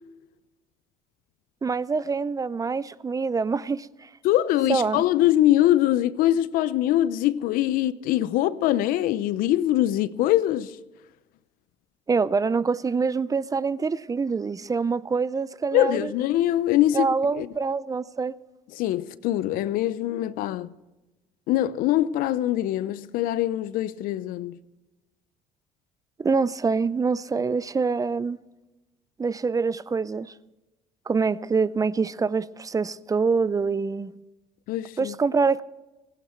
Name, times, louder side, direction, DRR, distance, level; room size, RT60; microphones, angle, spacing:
voice 1, 1.6-4.1 4.7-5.0 12.1-16.1 16.9-18.3 26.2-28.4 29.2-30.3 31.1-34.1 35.0-35.6, right 4 dB, 25° right, 0.6 m, -25 dB
voice 2, 4.2-10.8 15.7-17.5 18.7-20.7 21.5-24.6 34.7-35.1, left 13 dB, 70° left, 0.7 m, -23 dB
17.0 x 16.5 x 4.5 m
supercardioid pair, 85°, 15 cm